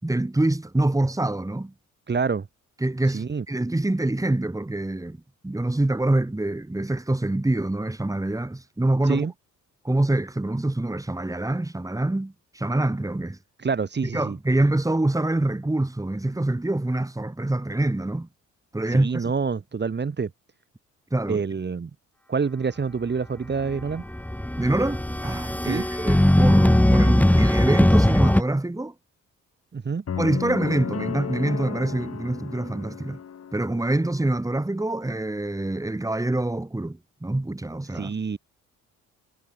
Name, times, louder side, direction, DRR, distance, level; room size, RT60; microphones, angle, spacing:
voice 1, 0.0-1.7 2.8-5.2 5.4-9.2 9.8-13.4 14.1-18.3 18.7-19.3 21.1-21.4 24.6-28.9 30.2-33.2 33.5-38.1, right 2 dB, 10° right, 5.6 m, -25 dB
voice 2, 2.1-2.5 3.1-3.4 9.1-9.3 13.6-14.4 18.9-20.3 21.3-21.9 22.3-24.0 25.6-25.9 29.7-30.0 37.9-38.4, right 5 dB, 35° right, 5.5 m, -27 dB
sound 1, 23.6-28.4, left 1 dB, 5° left, 6.1 m, -19 dB
sound 2, 30.1-34.2, left 8 dB, 55° left, 7.7 m, -34 dB
cardioid pair, 90°, 30 cm